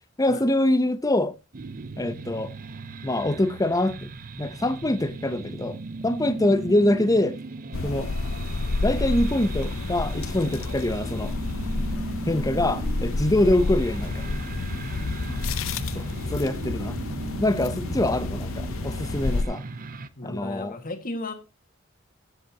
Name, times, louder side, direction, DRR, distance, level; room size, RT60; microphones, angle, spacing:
voice 1, 0.2-1.3 2.0-2.5 3.0-4.1 4.4-5.8 6.0-7.4 7.8-8.1 8.8-11.3 12.3-14.4 15.9-16.0 16.3-17.0 17.4-19.6 20.2-20.8, left 1 dB, 15° left, 0.8 m, -24 dB
sound 1, 1.5-20.1, right 3 dB, 45° right, 0.7 m, -38 dB
sound 2, 7.7-19.4, left 3 dB, 85° left, 0.7 m, -30 dB
voice 2, 20.2-21.3, left 2 dB, 45° left, 1.9 m, -35 dB
15.0 x 8.0 x 2.9 m
head